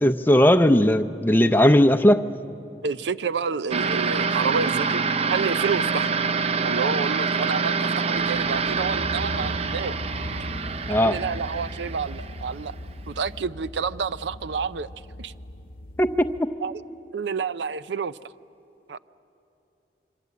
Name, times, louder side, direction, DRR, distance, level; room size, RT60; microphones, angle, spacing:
voice 1, 0.0-2.2 10.9-11.2 16.0-16.5, left 1 dB, 10° left, 8 dB, 0.6 m, -18 dB
voice 2, 2.8-5.0 5.3-6.1 6.6-10.0 11.0-12.7 13.1-14.9 15.2-15.3 16.6-16.7 17.1-18.2 18.9-19.0, right 5 dB, 80° right, 15 dB, 0.5 m, -29 dB
sound 1, 3.7-12.8, right 5 dB, 35° right, 0.5 m, -26 dB
sound 2, 8.2-16.4, left 1 dB, 50° left, 0.9 m, -38 dB
26.0 x 24.5 x 8.3 m, 2.8 s
head